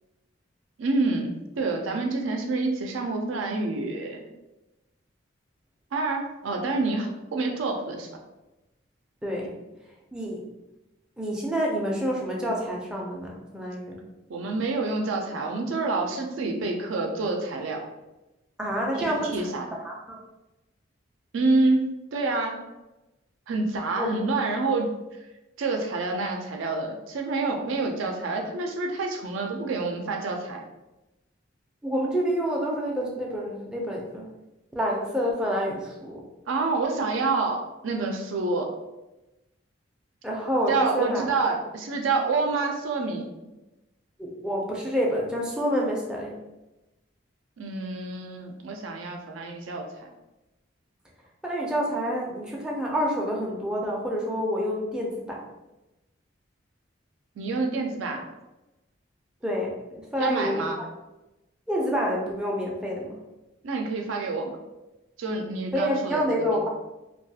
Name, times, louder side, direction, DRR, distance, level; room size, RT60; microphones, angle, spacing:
voice 1, 0.8-4.3 5.9-8.1 14.3-17.8 19.0-19.7 21.3-22.6 23.5-25.0 25.6-30.6 36.5-38.7 40.7-43.3 47.6-50.1 57.4-58.2 60.2-60.8 63.6-64.6 65.2-66.6, right 3 dB, 85° right, 2 dB, 0.4 m, -27 dB
voice 2, 9.2-9.5 10.1-10.4 11.2-14.0 18.6-19.5 19.8-20.2 24.0-24.1 31.8-34.3 34.8-36.2 40.2-41.2 44.2-46.4 51.4-55.4 59.4-60.9 61.7-63.2 65.7-66.7, equal, 5° right, -3 dB, 0.4 m, -28 dB
2.3 x 2.2 x 2.7 m, 1.0 s
head